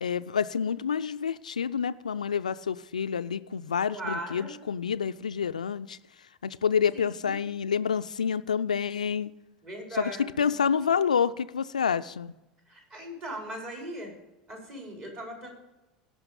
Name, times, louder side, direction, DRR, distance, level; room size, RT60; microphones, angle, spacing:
voice 1, 0.0-6.0 6.4-9.3 10.0-12.3, left 7 dB, 80° left, 13 dB, 0.3 m, -28 dB
voice 2, 3.9-4.6 6.9-7.3 9.6-10.5 12.7-14.1 14.5-15.5, right 1 dB, 35° right, 0 dB, 4.7 m, -39 dB
17.0 x 5.8 x 5.2 m, 0.99 s
figure-of-eight pair, 75°, 4 cm